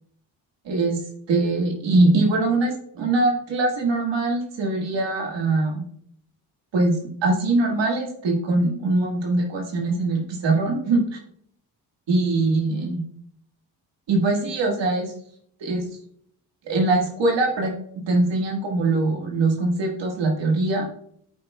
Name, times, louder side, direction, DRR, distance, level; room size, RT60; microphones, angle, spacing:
voice 1, 0.7-1.0 1.3-5.8 6.7-11.2 12.1-13.0 14.1-15.1 15.6-15.8 16.6-17.7 18.1-20.9, right 2 dB, 70° right, 1 dB, 1.8 m, -22 dB
12.5 x 5.5 x 2.3 m, 0.67 s
supercardioid pair, 50°, 45 cm